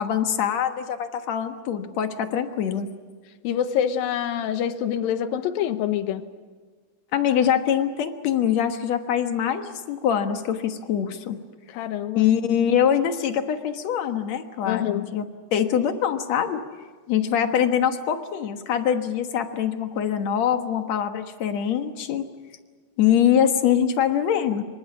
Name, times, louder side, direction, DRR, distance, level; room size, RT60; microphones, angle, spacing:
voice 1, 0.0-2.9 7.1-11.4 12.1-15.2 15.5-16.6 17.1-22.3 23.0-24.6, left 9 dB, 60° left, 7 dB, 2.2 m, -23 dB
voice 2, 3.4-6.3 11.7-12.3 14.6-15.1, left 9 dB, 75° left, 10 dB, 2.9 m, -26 dB
27.0 x 25.0 x 6.1 m, 1.5 s
omnidirectional pair, 4.3 m